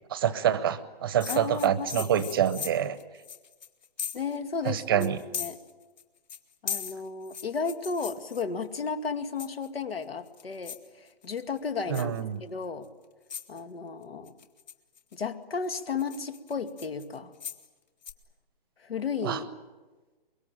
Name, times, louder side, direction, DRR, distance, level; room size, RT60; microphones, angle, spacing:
voice 1, 0.1-3.0 4.6-5.2 11.9-12.4 19.2-19.4, right 9 dB, 25° right, 15 dB, 0.8 m, -26 dB
sound 1, 1.2-4.4 4.6-4.7 5.0-6.0 6.3-8.8 9.4-9.8 10.3-10.9 11.2-11.6 11.9-12.2 12.8-12.9 13.3-13.6 14.3-15.1 15.6-17.7 18.0-18.1, left 8 dB, 50° left, 2.1 m, -38 dB
voice 2, 1.3-2.1 4.1-5.6 6.6-12.1 12.4-12.9 13.5-14.3 15.1-17.3 18.8-19.5, left 5 dB, 85° left, 9 dB, 2.3 m, -34 dB
24.0 x 22.5 x 8.9 m, 1.3 s
hypercardioid pair, 165°, 29 cm